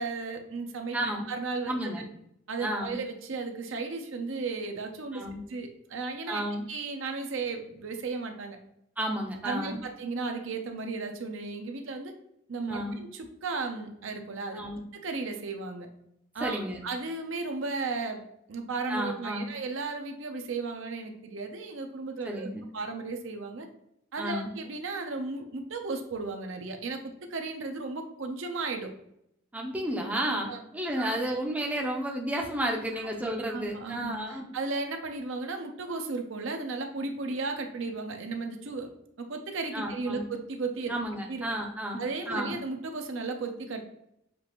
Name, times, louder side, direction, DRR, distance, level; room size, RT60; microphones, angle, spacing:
voice 1, 0.0-1.0 1.3-2.1 2.5-5.2 5.5-6.4 6.7-8.6 9.4-12.1 12.5-14.6 14.9-15.9 16.3-18.2 18.5-22.5 22.7-23.7 24.1-27.0 27.3-28.9 30.1-30.6 31.0-31.4 33.0-38.9 39.2-40.9 41.3-41.4 42.0-43.8, right 3 dB, 65° right, 5 dB, 0.6 m, -35 dB
voice 2, 0.9-1.2 1.7-2.0 2.6-3.0 5.1-5.4 6.3-6.7 9.0-9.8 12.7-13.0 14.5-14.8 16.4-16.8 18.9-19.5 22.2-22.6 24.2-24.5 29.5-34.5 39.7-40.3 40.9-42.6, right 1 dB, 5° right, 0 dB, 0.5 m, -32 dB
6.8 x 2.5 x 2.9 m, 0.77 s
head